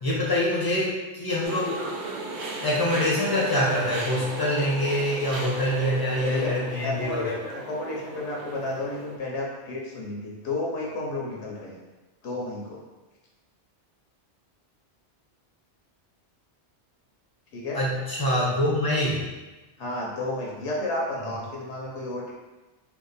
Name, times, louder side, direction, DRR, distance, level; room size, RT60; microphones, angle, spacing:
voice 1, 0.0-1.9 2.6-7.3 17.7-19.2, left 1 dB, 25° left, -5 dB, 0.6 m, -25 dB
sound 1, 1.4-9.2, right 2 dB, 75° right, 0.9 m, -36 dB
voice 2, 6.2-6.5 6.8-11.8 12.2-12.8 17.5-17.8 19.8-22.3, left 2 dB, 80° left, -2 dB, 0.9 m, -32 dB
2.6 x 2.4 x 3.9 m, 1.1 s
omnidirectional pair, 1.2 m